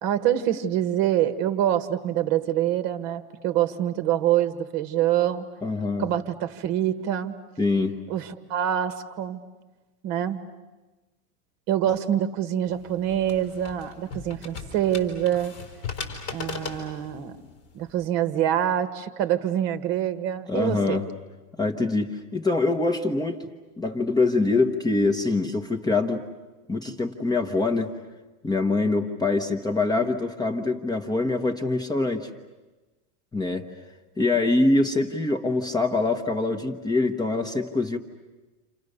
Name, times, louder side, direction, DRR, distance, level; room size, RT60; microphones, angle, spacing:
voice 1, 0.0-5.4 6.0-7.3 8.1-9.4 10.0-10.4 11.7-15.5 16.3-17.3 17.7-21.0, right 11 dB, 50° right, 11 dB, 1.6 m, -25 dB
voice 2, 5.6-6.1 7.6-8.0 20.5-21.0 21.6-23.5 23.8-26.2 26.7-27.9 28.4-32.3 33.3-33.7 34.2-38.0, left 3 dB, 10° left, 4 dB, 1.0 m, -24 dB
sound 1, 12.7-18.0, left 5 dB, 30° left, 4.9 m, -38 dB
29.5 x 28.0 x 6.7 m, 1.2 s
supercardioid pair, 140°, 45 cm